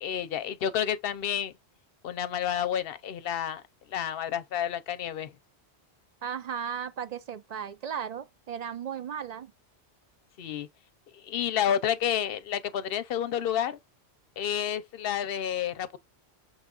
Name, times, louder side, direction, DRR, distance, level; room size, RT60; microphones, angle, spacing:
voice 1, 0.0-1.5 2.0-3.6 3.9-5.3 10.4-10.7 11.1-13.8 14.4-16.0, left 9 dB, 65° left, 0.7 m, -30 dB
voice 2, 6.2-9.5, right 7 dB, 55° right, 0.4 m, -35 dB
6.2 x 2.3 x 3.6 m
omnidirectional pair, 1.1 m